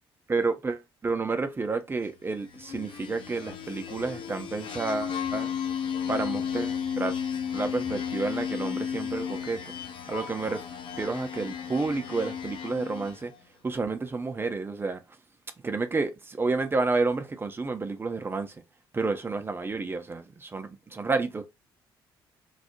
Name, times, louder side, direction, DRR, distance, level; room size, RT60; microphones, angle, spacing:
voice 1, 0.3-5.5 6.1-7.2 7.5-9.6 10.1-10.6 11.0-13.3 13.6-15.0 15.6-18.6 18.9-21.4, right 3 dB, 20° right, 0.4 m, -30 dB
sound 1, 2.5-13.3, left 7 dB, 45° left, 0.4 m, -34 dB
2.2 x 2.0 x 2.8 m
figure-of-eight pair, 45°, 12 cm